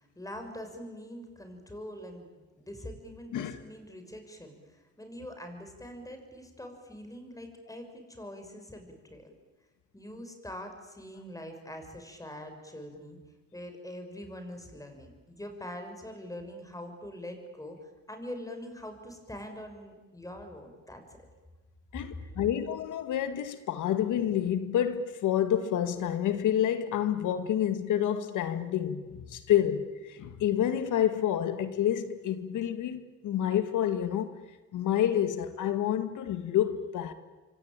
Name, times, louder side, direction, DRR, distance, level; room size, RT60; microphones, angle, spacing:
voice 1, 0.0-9.3 9.9-13.2 13.5-21.0 22.2-22.3, left 1 dB, 10° left, 6.2 m, -44 dB
voice 2, 21.9-34.3 34.7-37.1, left 10 dB, 80° left, 2.1 m, -28 dB
27.0 x 24.0 x 9.1 m
cardioid pair, 90°, 30 cm